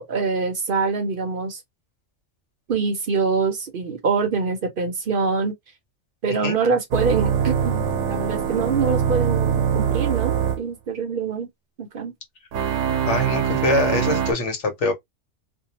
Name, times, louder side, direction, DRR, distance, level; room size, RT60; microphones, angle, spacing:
voice 1, 0.0-1.6 2.7-5.5 6.2-11.5 11.8-12.1 14.1-14.2, right 5 dB, 55° right, 0.7 m, -24 dB
sound 1, 6.9-10.6 12.5-14.3, right 8 dB, 85° right, 0.9 m, -23 dB
voice 2, 13.0-14.9, left 2 dB, 80° left, 1.3 m, -23 dB
2.7 x 2.1 x 2.8 m
omnidirectional pair, 1.2 m